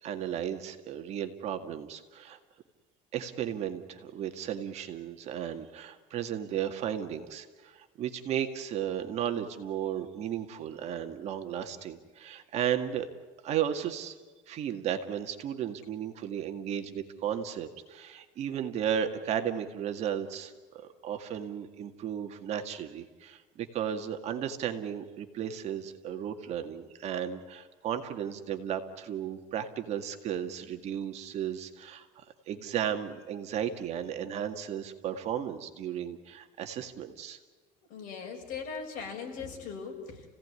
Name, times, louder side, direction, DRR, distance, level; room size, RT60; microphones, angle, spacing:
voice 1, 0.0-2.4 3.1-13.1 13.4-14.2 14.5-37.4, right 9 dB, 45° right, 6 dB, 2.1 m, -34 dB
voice 2, 37.9-40.3, left 5 dB, 60° left, 2 dB, 6.7 m, -39 dB
30.0 x 17.5 x 9.8 m, 1.4 s
cardioid pair, 155°, 16 cm